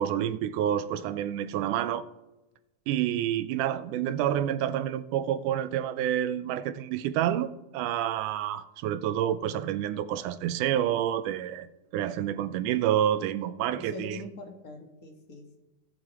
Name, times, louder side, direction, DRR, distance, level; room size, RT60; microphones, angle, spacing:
voice 1, 0.0-2.0 2.9-11.7 11.9-14.2, right 11 dB, 80° right, 2.1 m, -28 dB
voice 2, 13.8-15.6, left 2 dB, 40° left, 1.3 m, -43 dB
18.5 x 7.5 x 3.0 m
omnidirectional pair, 3.6 m